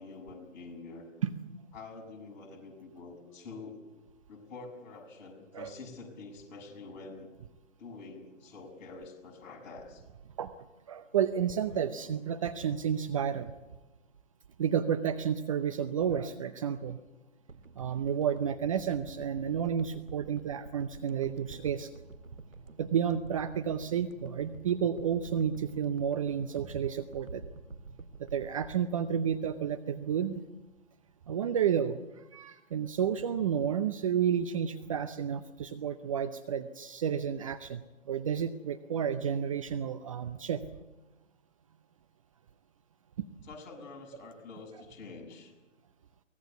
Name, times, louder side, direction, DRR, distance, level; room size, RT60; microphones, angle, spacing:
voice 1, 0.0-1.1 1.7-3.8 4.3-7.3 7.8-10.0 43.4-45.5, left 3 dB, 35° left, 2 dB, 6.8 m, -47 dB
voice 2, 10.9-13.5 14.6-17.0 17.8-21.9 22.8-27.4 28.3-30.4 31.3-40.6, right 8 dB, 25° right, 10 dB, 0.7 m, -31 dB
sound 1, 17.5-29.8 30.1-30.2, right 3 dB, 80° right, 2.0 m, -49 dB
23.5 x 18.5 x 8.3 m, 1.1 s
figure-of-eight pair, 140°, 39 cm